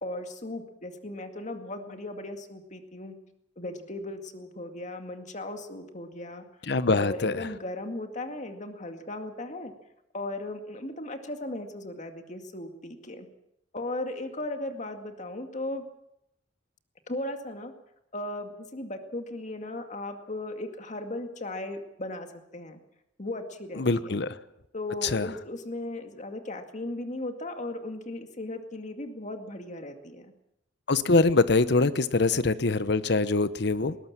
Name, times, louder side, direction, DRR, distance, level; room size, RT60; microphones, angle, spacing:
voice 1, 0.0-3.2 3.6-6.4 6.9-9.7 10.1-13.3 13.7-15.8 17.1-17.7 18.1-22.8 23.2-24.2 24.7-30.3, left 1 dB, 40° left, 6 dB, 2.1 m, -37 dB
voice 2, 6.6-7.5 23.8-24.4 25.0-25.3 30.9-34.0, left 3 dB, 65° left, 14 dB, 0.9 m, -24 dB
20.5 x 19.0 x 7.5 m, 0.83 s
head